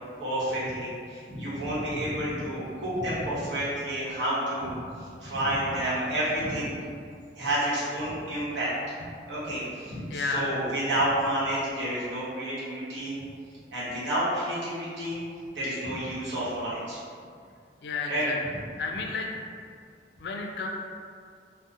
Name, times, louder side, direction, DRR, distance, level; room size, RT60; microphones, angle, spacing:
voice 1, 0.2-4.8 5.2-6.7 7.3-8.7 9.3-13.1 13.7-15.2 15.5-17.0 18.1-18.3, right 1 dB, 80° right, -9 dB, 0.9 m, -30 dB
voice 2, 10.1-10.6 17.8-18.4 18.8-19.3 20.2-20.7, left 3 dB, 65° left, 1 dB, 0.3 m, -31 dB
2.5 x 2.0 x 2.7 m, 2.2 s
head